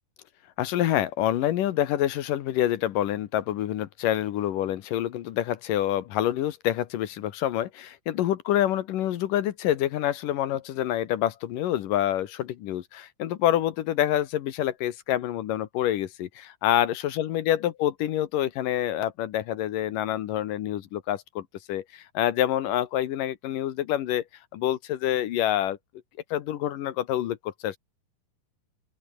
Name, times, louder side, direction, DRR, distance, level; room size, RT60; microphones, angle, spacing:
voice 1, 0.6-24.2 24.5-25.8 26.3-27.8, left 12 dB, 70° left, 2.7 m, -27 dB
open air
omnidirectional pair, 4.1 m